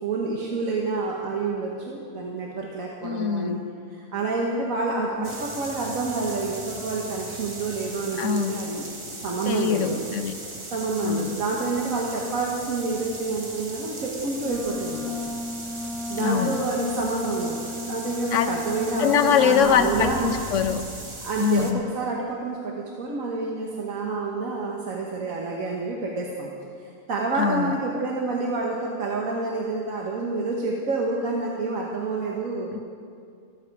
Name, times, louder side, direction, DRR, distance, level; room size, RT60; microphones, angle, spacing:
voice 1, 0.0-3.6 3.9-8.8 9.2-10.0 10.3-15.1 16.1-20.3 21.2-26.5 26.8-32.7, right 3 dB, 75° right, -2 dB, 1.7 m, -28 dB
voice 2, 3.0-3.6 5.2-5.3 8.2-8.6 9.5-10.3 11.0-11.4 16.2-16.6 18.3-18.5 19.0-20.8 21.4-21.8 27.4-27.7 32.7-32.8, left 8 dB, 70° left, 9 dB, 0.9 m, -23 dB
sound 1, 5.2-21.7, right 2 dB, 25° right, 1.0 m, -38 dB
Wind instrument woodwind instrument, 14.4-20.4, left 3 dB, ahead, 0.8 m, -34 dB
sound 2, 19.6-21.3, right 1 dB, 40° right, 2.8 m, -38 dB
14.0 x 14.0 x 4.8 m, 2.3 s
omnidirectional pair, 1.4 m